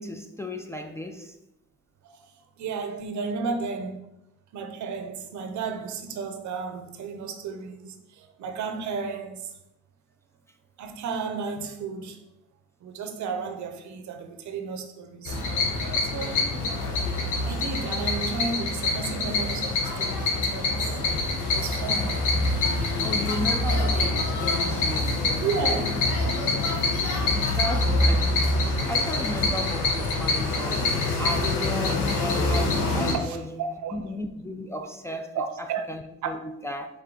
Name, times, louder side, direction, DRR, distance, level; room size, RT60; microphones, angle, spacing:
voice 1, 0.0-1.3 17.8-17.9 23.0-25.5 27.3-33.6 33.9-36.9, left 1 dB, 10° left, 0.3 m, -35 dB
voice 2, 2.6-4.1 4.5-9.5 10.8-12.2 12.8-15.4 16.0-16.5 17.4-21.0 21.5-22.2 25.4-25.9 26.2-26.3 33.2-33.9 35.3-35.8 36.2-36.3, right 5 dB, 70° right, 0.7 m, -33 dB
sound 1, 15.2-33.1, left 2 dB, 90° left, 1.0 m, -25 dB
4.8 x 2.8 x 3.7 m
cardioid pair, 90°, 30 cm